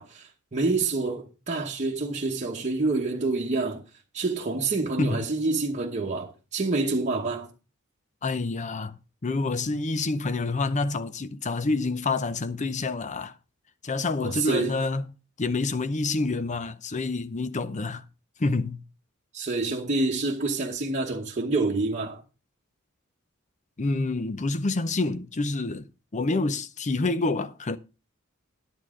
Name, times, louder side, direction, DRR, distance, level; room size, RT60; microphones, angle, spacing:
voice 1, 0.0-3.8 4.1-7.5 14.2-14.7 19.3-22.2, right 3 dB, 35° right, 1.1 m, -27 dB
voice 2, 8.2-13.3 13.8-15.0 15.4-18.0 18.4-18.8 23.8-27.8, left 3 dB, 35° left, 0.6 m, -28 dB
10.5 x 9.1 x 3.7 m
head